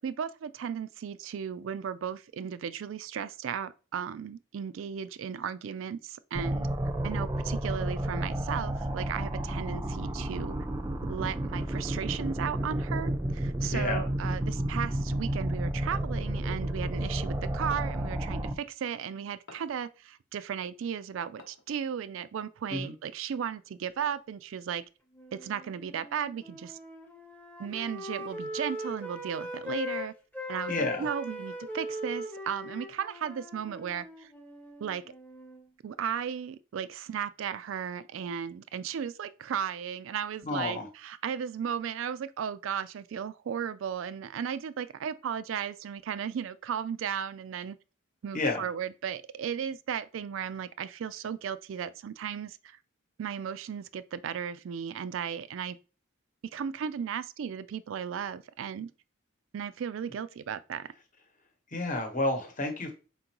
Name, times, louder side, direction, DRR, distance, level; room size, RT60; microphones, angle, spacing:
voice 1, 0.0-6.7 7.0-10.6 11.0-24.8 25.3-26.8 27.6-30.1 30.5-34.3 34.8-35.0 35.8-47.8 48.2-52.8 53.2-55.8 56.5-58.9 59.5-60.9, right 8 dB, 75° right, 0.3 m, -35 dB
sound 1, 6.3-18.5, right 1 dB, 15° right, 0.5 m, -31 dB
voice 2, 13.7-14.1 22.7-22.9 30.7-31.1 40.4-40.9 48.3-48.6 61.7-62.9, left 2 dB, 40° left, 1.0 m, -30 dB
sound 2, 15.9-16.2 17.7-18.1 19.5-19.8 21.4-21.8, left 3 dB, 80° left, 0.9 m, -50 dB
Wind instrument woodwind instrument, 25.1-30.1 30.3-35.6, left 1 dB, 10° left, 0.8 m, -40 dB
4.4 x 3.8 x 2.9 m
head